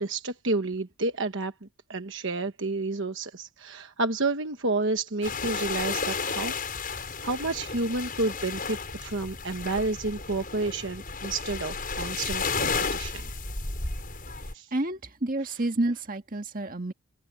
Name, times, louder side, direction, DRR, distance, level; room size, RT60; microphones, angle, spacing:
voice 1, 0.0-6.5 6.9-13.3 14.5-14.7, right 3 dB, 55° right, 1.2 m, -30 dB
sound 1, 5.2-14.5, left 4 dB, 40° left, 7.2 m, -33 dB
voice 2, 14.7-16.9, right 2 dB, 40° right, 1.7 m, -29 dB
head